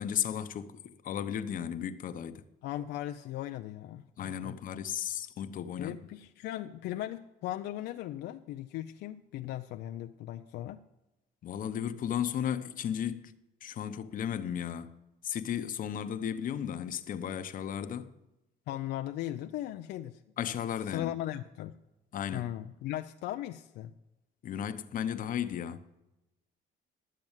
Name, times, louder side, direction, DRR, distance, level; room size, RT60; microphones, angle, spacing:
voice 1, 0.0-2.4 4.2-6.0 11.4-13.3 13.6-15.0 15.2-18.1 20.4-21.1 22.1-22.5 24.4-25.8, left 9 dB, 55° left, 0.9 m, -34 dB
voice 2, 2.6-4.6 5.8-10.8 18.7-20.2 20.9-21.8 22.3-23.9, left 13 dB, 80° left, 0.6 m, -38 dB
12.0 x 7.6 x 7.3 m
cardioid pair, 110°, 17 cm